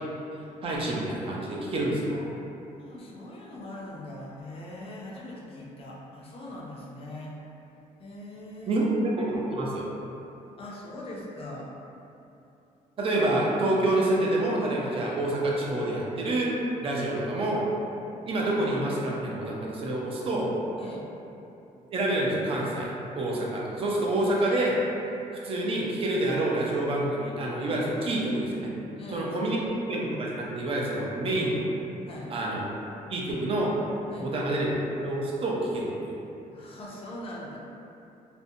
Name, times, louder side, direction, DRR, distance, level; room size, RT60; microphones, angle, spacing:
voice 1, 0.6-2.1 8.7-8.9 9.2-9.8 13.0-16.5 16.8-17.7 18.2-20.5 21.9-24.8 25.4-28.7 29.1-29.6 29.9-31.7 32.3-32.6 33.1-33.7 34.2-36.2, right 1 dB, 40° right, -4 dB, 0.4 m, -27 dB
voice 2, 2.7-7.3 8.0-9.2 10.6-11.7 20.8-21.1 29.0-29.7 32.1-32.3 34.1-34.3 36.5-37.6, left 1 dB, 40° left, -4 dB, 0.5 m, -41 dB
2.5 x 2.0 x 2.6 m, 2.8 s
cardioid pair, 140°, 15 cm